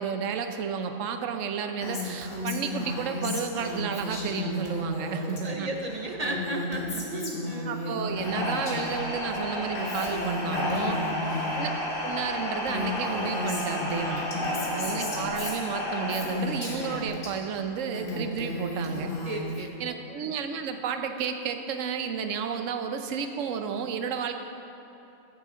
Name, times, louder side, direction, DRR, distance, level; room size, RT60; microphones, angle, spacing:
voice 1, 0.0-5.7 7.6-11.0 11.6-11.7 12.0-14.3 14.7-19.1 19.8-24.3, right 6 dB, 70° right, 7 dB, 1.0 m, -32 dB
Female speech woman speaking, 1.8-5.4 5.7-9.0 9.3-11.7 12.3-12.4 12.6-17.3 17.7-19.7, left 2 dB, 60° left, 2.0 m, -34 dB
voice 2, 5.0-7.8 11.0-11.3 14.1-14.9 19.2-20.0, right 1 dB, 45° right, 2 dB, 0.5 m, -35 dB
sound 1, 8.1-17.0, left 1 dB, 40° left, 2.2 m, -32 dB
15.0 x 8.2 x 3.7 m, 2.9 s
omnidirectional pair, 1.4 m